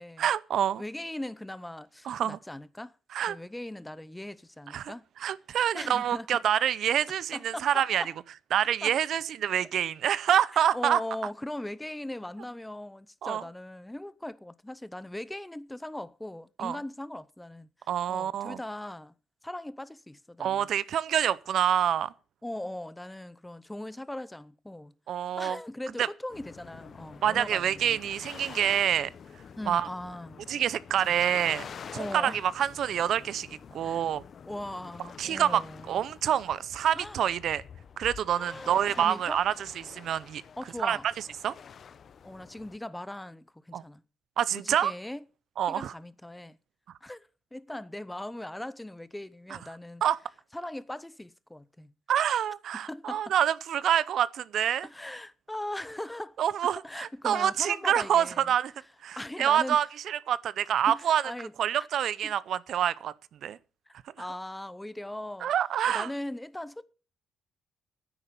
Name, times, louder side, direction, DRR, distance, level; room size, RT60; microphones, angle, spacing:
voice 1, 0.2-0.8 2.1-2.4 3.1-3.4 4.7-4.9 5.2-8.0 8.5-11.0 13.2-13.4 16.6-16.8 17.9-18.6 20.4-22.1 25.1-25.6 26.0-26.1 27.2-29.1 29.7-29.9 30.5-31.7 32.1-33.5 33.7-34.2 35.2-35.6 35.9-37.6 38.0-39.5 39.9-40.4 40.8-41.0 41.4-41.5 43.7-43.8 44.4-44.9 45.6-45.9 50.0-50.2 52.1-54.9 56.4-58.7 59.0-61.3 61.6-63.1 63.4-63.6 65.4-66.1, right 10 dB, 70° right, 0.6 m, -27 dB
voice 2, 0.8-2.9 3.3-5.0 5.7-6.4 7.3-8.1 8.8-8.9 10.5-17.7 18.1-19.1 19.4-20.7 22.4-24.9 25.4-28.0 29.6-30.4 31.0-31.1 31.9-32.4 33.8-34.1 34.5-35.9 36.9-37.2 38.4-39.4 40.6-41.1 42.2-44.0 44.5-45.2 45.7-46.6 47.0-50.0 50.5-51.9 52.9-53.3 54.8-58.5 59.2-59.8 60.9-61.5 61.8-61.9 62.2-62.3 64.2-65.5 65.8-66.8, left 1 dB, 10° left, 0.7 m, -39 dB
sound 1, 26.3-42.8, left 7 dB, 50° left, 0.9 m, -47 dB
9.9 x 9.0 x 6.9 m
cardioid pair, 90°, 0 cm